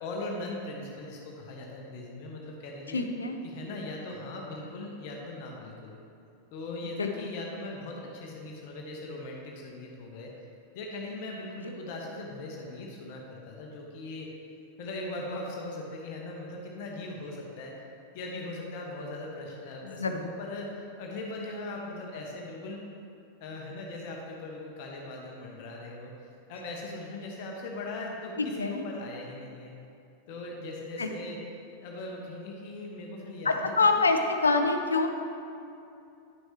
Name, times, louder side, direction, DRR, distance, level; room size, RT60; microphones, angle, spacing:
voice 1, 0.0-3.0 3.4-5.9 6.5-10.3 10.7-14.3 14.8-17.8 18.1-22.8 23.4-29.7 30.3-31.4 31.8-34.0, left 2 dB, 50° left, -1 dB, 1.1 m, -39 dB
voice 2, 2.9-3.4 7.0-7.1 19.8-20.3 28.4-28.9 31.0-31.1 33.4-35.1, left 3 dB, 75° left, 6 dB, 0.6 m, -26 dB
10.5 x 6.3 x 3.3 m, 2.6 s
figure-of-eight pair, 90°, 0 cm